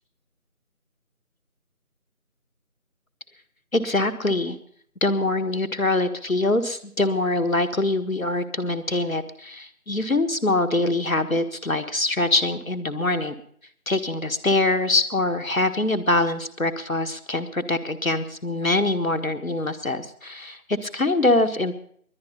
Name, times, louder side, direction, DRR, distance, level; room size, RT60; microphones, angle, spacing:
voice 1, 3.7-4.6 5.0-13.3 13.9-21.8, left 2 dB, 70° left, 9 dB, 1.7 m, -24 dB
21.5 x 9.7 x 5.6 m, 0.62 s
figure-of-eight pair, 180°, 43 cm